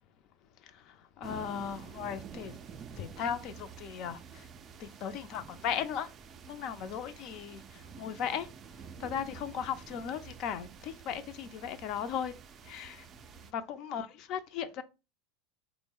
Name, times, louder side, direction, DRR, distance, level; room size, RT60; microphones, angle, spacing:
voice 1, 1.2-2.6 3.0-4.4 4.8-6.1 6.5-7.6 8.0-8.5 9.0-12.3 12.7-13.0 13.5-14.8, left 8 dB, 50° left, 0.4 m, -36 dB
sound 1, 1.2-13.5, right 7 dB, 35° right, 0.3 m, -49 dB
3.2 x 2.0 x 3.7 m
hypercardioid pair, 85°, 0 cm